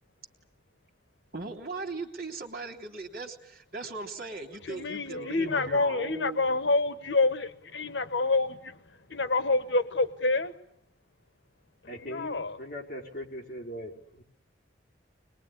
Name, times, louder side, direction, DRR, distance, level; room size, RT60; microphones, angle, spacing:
voice 1, 1.3-6.4, right 3 dB, 55° right, 3.5 m, -39 dB
voice 2, 4.6-8.8 9.1-10.5 12.0-12.6, left 3 dB, 90° left, 1.4 m, -27 dB
voice 3, 11.9-14.2, equal, 50° left, 4.6 m, -40 dB
25.5 x 22.0 x 9.9 m
head